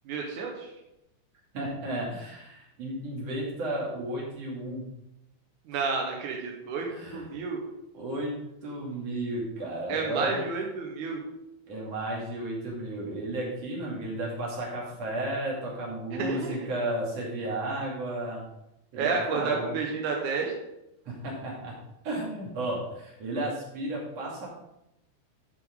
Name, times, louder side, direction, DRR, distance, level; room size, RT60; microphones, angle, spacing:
voice 1, 0.1-0.7 5.7-7.6 9.9-11.2 16.2-16.7 17.4-17.5 18.9-20.5, right 4 dB, 80° right, 1 dB, 1.7 m, -31 dB
voice 2, 1.5-4.9 6.9-7.3 7.9-10.4 11.7-18.4 18.9-19.8 21.0-21.8 22.0-24.5, right 1 dB, 40° right, -4 dB, 3.1 m, -33 dB
11.5 x 6.8 x 3.9 m, 0.87 s
omnidirectional pair, 5.3 m